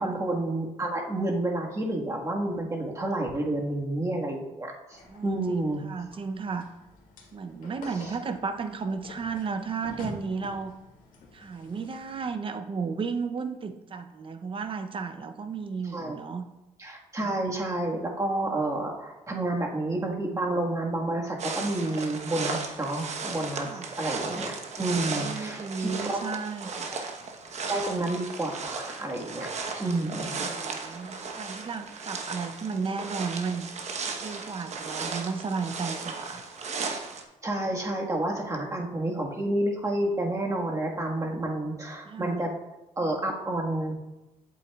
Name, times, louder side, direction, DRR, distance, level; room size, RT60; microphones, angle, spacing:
voice 1, 0.0-5.8 8.0-8.1 15.9-16.2 16.8-26.3 26.9-27.0 27.7-29.5 29.8-30.3 37.4-42.5 43.0-44.0, right 1 dB, 25° right, -1 dB, 1.6 m, -30 dB
sound 1, 4.9-12.4, left 2 dB, 80° left, 1.7 m, -47 dB
voice 2, 5.1-5.4 5.8-6.7 7.3-10.7 11.3-16.5 17.3-17.4 23.6-23.9 25.1-27.0 30.4-33.7 34.2-36.4 42.1-42.4, right 5 dB, 40° right, 8 dB, 0.7 m, -33 dB
sound 2, 21.4-37.2, right 4 dB, 55° right, 1.0 m, -36 dB
8.4 x 7.4 x 2.4 m, 0.99 s
cardioid pair, 85°, 14 cm